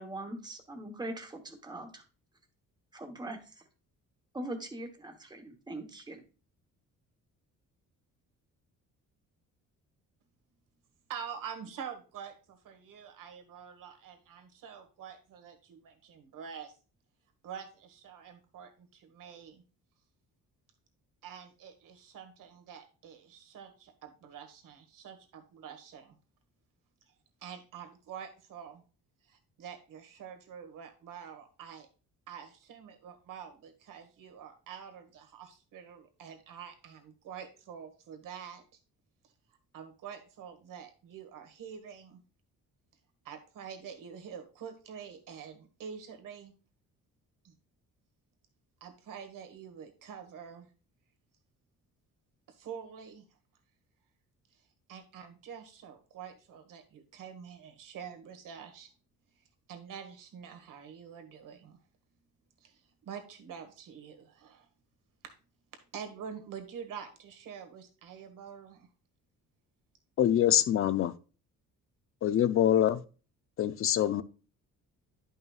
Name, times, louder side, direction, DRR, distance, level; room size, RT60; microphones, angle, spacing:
voice 1, 0.0-2.0 2.9-3.4 4.3-6.2, right 1 dB, 10° right, 1.0 m, -41 dB
voice 2, 11.1-16.7 17.4-19.6 21.2-26.1 27.4-28.8 29.3-31.9 32.3-38.6 39.7-42.2 43.2-46.5 47.4-47.5 48.8-50.7 52.5-53.2 54.9-58.9 59.7-61.8 62.6-64.7 65.2-65.3 65.9-68.9, right 7 dB, 70° right, 1.5 m, -46 dB
voice 3, 70.2-71.1 72.2-73.0 73.6-74.2, left 11 dB, 40° left, 0.4 m, -25 dB
10.5 x 5.5 x 2.4 m
cardioid pair, 145°, 33 cm